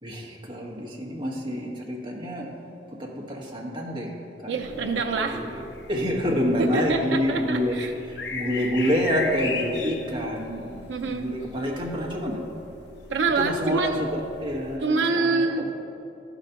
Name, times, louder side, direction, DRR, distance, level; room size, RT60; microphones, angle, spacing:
voice 1, 0.0-2.5 3.0-4.1 4.4-7.8 8.1-12.4 13.4-15.4, equal, 25° right, -2 dB, 1.2 m, -28 dB
sound 1, 4.5-14.8, left 4 dB, 75° left, 0.7 m, -39 dB
voice 2, 4.5-5.4 6.6-7.9 10.9-11.3 13.1-14.0 14.8-15.7, right 4 dB, 90° right, 3 dB, 0.5 m, -25 dB
11.5 x 4.0 x 5.6 m, 2.8 s
head